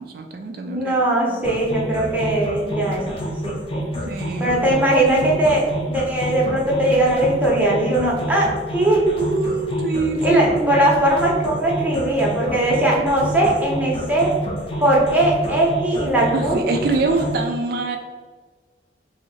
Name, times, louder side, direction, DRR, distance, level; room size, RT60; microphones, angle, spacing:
voice 1, 0.0-1.0 1.3-1.6 4.1-4.8 9.2-10.7 16.3-18.0, right 3 dB, 55° right, 4 dB, 0.3 m, -25 dB
voice 2, 0.6-3.8 4.4-8.5 8.7-9.1 10.2-14.3 14.8-16.6, right 1 dB, 10° right, -4 dB, 0.7 m, -19 dB
sound 1, 1.4-17.4, equal, 30° left, 0.6 m, -29 dB
2.7 x 2.7 x 4.1 m, 1.4 s
head